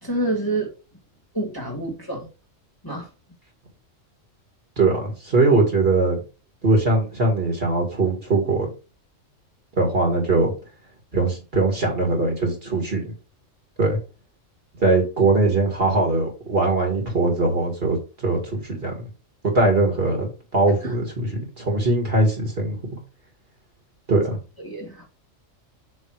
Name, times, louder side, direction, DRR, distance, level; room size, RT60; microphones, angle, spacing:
voice 1, 0.0-0.7 1.3-2.3 2.8-3.1 24.6-25.0, right 2 dB, 15° left, 1.7 m, -27 dB
voice 2, 4.8-6.2 6.6-8.7 9.8-10.5 11.1-13.1 13.8-14.0 14.8-19.1 19.5-23.0 24.1-24.4, right 2 dB, 50° right, 2.4 m, -21 dB
7.5 x 3.1 x 4.8 m
omnidirectional pair, 1.3 m